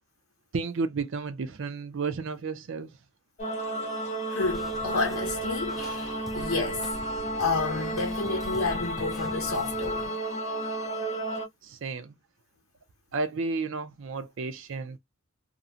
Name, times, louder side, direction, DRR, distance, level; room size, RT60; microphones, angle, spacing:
voice 1, 0.5-2.9 11.6-12.1 13.1-15.0, right 4 dB, 65° right, 0.4 m, -32 dB
sound 1, 3.4-11.5, right 1 dB, 35° left, 0.7 m, -32 dB
voice 2, 4.3-6.9 7.4-10.1, left 3 dB, 75° left, 0.6 m, -30 dB
sound 2, 4.4-10.1, equal, ahead, 0.3 m, -44 dB
2.5 x 2.0 x 2.6 m
head